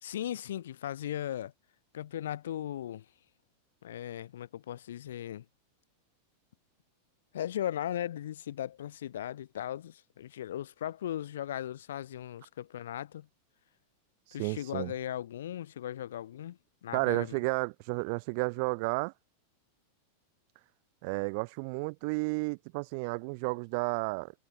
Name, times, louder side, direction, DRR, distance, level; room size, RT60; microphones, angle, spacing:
voice 1, 0.0-1.5 1.9-3.0 3.8-5.4 7.3-13.3 14.3-17.4, left 11 dB, 90° left, 2.4 m, -37 dB
voice 2, 14.4-14.9 16.9-19.1 21.0-24.3, right 32 dB, 50° right, 0.9 m, -32 dB
supercardioid pair, 150°, 0 cm